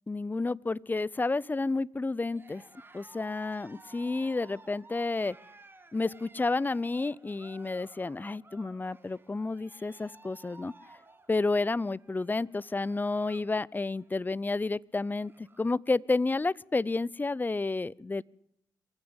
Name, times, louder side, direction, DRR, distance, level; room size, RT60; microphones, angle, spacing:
voice 1, 0.1-2.6 2.9-5.4 5.9-10.7 11.3-18.2, left 3 dB, 20° left, 24 dB, 0.7 m, -30 dB
Cheering, 2.3-13.5 13.8-14.2 14.7-14.8 14.9-15.8, right 3 dB, 25° right, 3.6 m, -55 dB
23.5 x 15.5 x 8.1 m, 0.76 s
hypercardioid pair, 50°, 9 cm